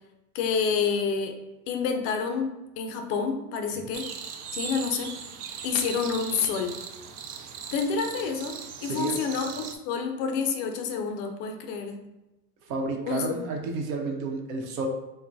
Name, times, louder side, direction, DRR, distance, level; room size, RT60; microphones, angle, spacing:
voice 1, 0.3-1.4 1.7-4.1 4.5-5.3 5.6-6.8 7.7-12.0 13.1-13.3, left 5 dB, 35° left, 4 dB, 0.4 m, -28 dB
sound 1, 3.9-9.7, right 7 dB, 85° right, 0.6 m, -39 dB
voice 2, 8.8-9.2 12.6-14.9, right 3 dB, 65° right, 2 dB, 0.9 m, -31 dB
4.2 x 2.2 x 2.6 m, 1.0 s
supercardioid pair, 125°, 44 cm